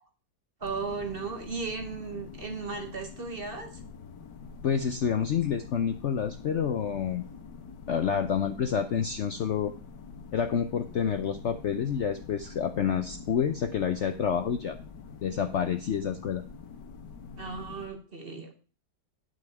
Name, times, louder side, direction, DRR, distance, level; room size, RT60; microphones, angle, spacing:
sound 1, 0.6-17.9, left 5 dB, 80° left, 1.7 m, -46 dB
voice 1, 0.6-3.7 17.4-18.5, right 4 dB, 35° right, 5 dB, 1.2 m, -36 dB
voice 2, 4.6-7.3 7.9-9.7 10.3-14.8 15.2-16.4, left 7 dB, 60° left, 8 dB, 0.7 m, -28 dB
9.1 x 6.3 x 4.8 m, 0.38 s
omnidirectional pair, 1.8 m